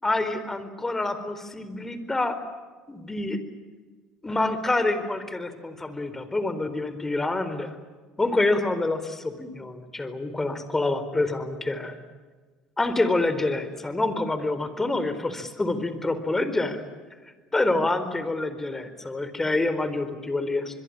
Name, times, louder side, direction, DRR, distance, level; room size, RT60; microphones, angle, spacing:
voice 1, 0.0-2.4 2.9-3.4 4.2-7.7 8.2-12.0 12.8-16.8 17.5-20.8, left 2 dB, 15° left, 11 dB, 4.2 m, -27 dB
26.0 x 22.0 x 8.8 m, 1.4 s
hypercardioid pair, 75°, 2 cm